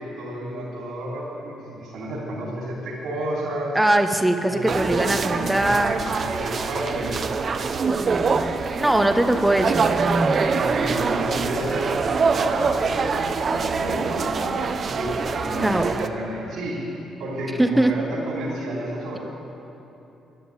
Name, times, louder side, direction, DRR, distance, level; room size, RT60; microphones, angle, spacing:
voice 1, 0.0-3.8 4.4-7.2 10.4-16.8 17.2-19.2, right 1 dB, 75° right, -6 dB, 3.5 m, -31 dB
voice 2, 3.7-6.0 7.9-10.6 15.6-15.9 17.6-17.9, right 1 dB, 10° right, 6 dB, 0.8 m, -22 dB
sound 1, 4.7-16.1, right 5 dB, 45° right, 0.7 m, -24 dB
12.5 x 11.0 x 8.9 m, 2.9 s
cardioid pair, 90°, 0 cm